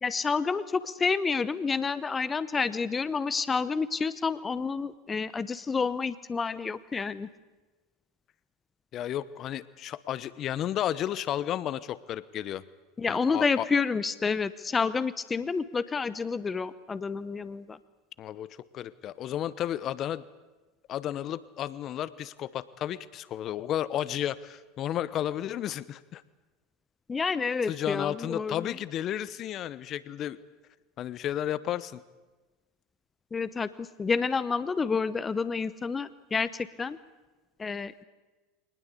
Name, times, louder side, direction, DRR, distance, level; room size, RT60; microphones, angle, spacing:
voice 1, 0.0-7.3 13.0-17.8 27.1-28.7 33.3-37.0 37.6-38.0, left 5 dB, 20° left, 16 dB, 0.9 m, -29 dB
voice 2, 8.9-12.6 13.1-13.7 18.2-20.2 20.9-26.2 27.7-30.4 31.0-32.0, left 11 dB, 45° left, 18 dB, 1.0 m, -33 dB
24.0 x 19.5 x 8.4 m, 1.2 s
hypercardioid pair, 85°, 0 cm